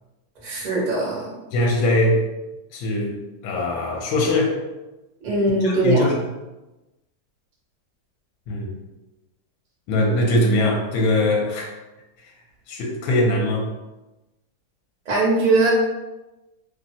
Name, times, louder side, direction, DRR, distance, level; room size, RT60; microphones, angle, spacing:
voice 1, 0.4-1.3 5.2-6.1 15.1-15.7, right 2 dB, 80° right, -4 dB, 0.4 m, -20 dB
voice 2, 1.5-2.2 2.7-3.2 3.4-4.6 5.6-6.2 8.5-8.7 9.9-11.7 12.7-13.7, left 1 dB, 75° left, 0 dB, 1.2 m, -21 dB
3.0 x 2.0 x 2.6 m, 1.0 s
omnidirectional pair, 1.9 m